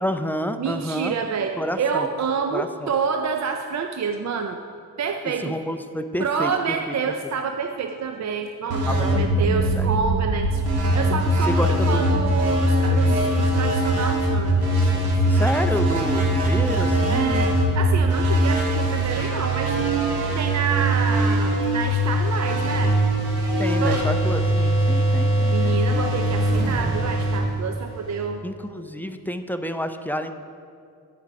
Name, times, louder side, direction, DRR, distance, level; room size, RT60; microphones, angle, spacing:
voice 1, 0.0-1.2 1.6-2.1 2.5-2.9 5.4-6.9 8.9-9.3 9.6-9.9 11.5-12.3 12.9-13.2 15.3-17.6 23.6-25.8 28.4-30.3, equal, 5° left, 8 dB, 0.4 m, -29 dB
voice 2, 0.6-4.6 5.0-5.6 6.2-15.4 17.1-19.8 20.3-23.0 23.8-24.1 25.5-28.4, right 6 dB, 50° right, 5 dB, 0.5 m, -28 dB
sound 1, 8.7-28.2, right 1 dB, 85° right, 1.7 m, -21 dB
10.5 x 5.2 x 4.7 m, 2.4 s
cardioid pair, 75°, 37 cm